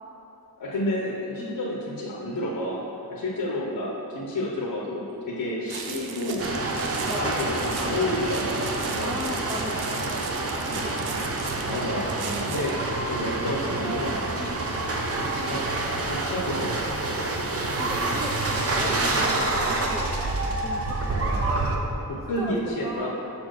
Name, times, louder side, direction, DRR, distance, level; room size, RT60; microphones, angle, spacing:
voice 1, 0.6-6.4 7.1-9.2 11.6-12.7 13.0-14.2 15.2-15.6 16.0-16.8 21.2-21.4 22.1-23.1, left 1 dB, 65° left, -4 dB, 0.9 m, -30 dB
sound 1, 5.7-12.8, right 5 dB, 90° right, 0.6 m, -38 dB
sound 2, 6.4-21.8, right 2 dB, 40° right, 0.7 m, -27 dB
voice 2, 6.7-7.5 9.0-12.0 12.2-12.8 14.4-14.6 17.7-21.2 21.7-23.1, equal, 10° right, -2 dB, 0.4 m, -38 dB
5.8 x 4.4 x 6.3 m, 3.0 s
wide cardioid pair, 120°, 37 cm